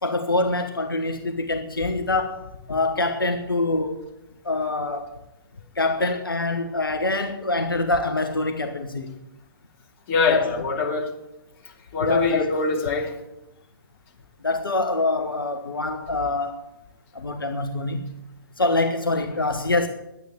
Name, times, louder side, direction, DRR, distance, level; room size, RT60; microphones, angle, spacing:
voice 1, 0.0-4.1 4.4-5.1 5.7-9.2 10.3-10.5 12.0-12.5 14.4-16.6 17.1-18.1 18.6-19.9, left 2 dB, 75° left, 5 dB, 1.2 m, -25 dB
voice 2, 10.1-11.1 11.9-13.1, left 4 dB, 35° left, 0 dB, 2.7 m, -23 dB
11.0 x 9.4 x 8.2 m, 0.92 s
figure-of-eight pair, 120°, 12 cm